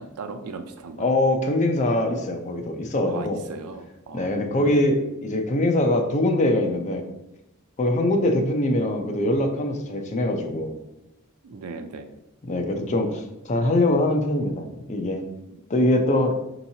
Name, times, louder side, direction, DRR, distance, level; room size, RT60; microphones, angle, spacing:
voice 1, 0.0-1.1 3.1-4.5 11.4-12.1, right 4 dB, 85° right, 7 dB, 0.5 m, -37 dB
voice 2, 1.0-3.4 4.1-7.0 7.8-10.8 12.4-15.2 15.7-16.3, left 1 dB, 35° left, 4 dB, 0.5 m, -23 dB
5.6 x 2.9 x 2.7 m, 0.89 s
head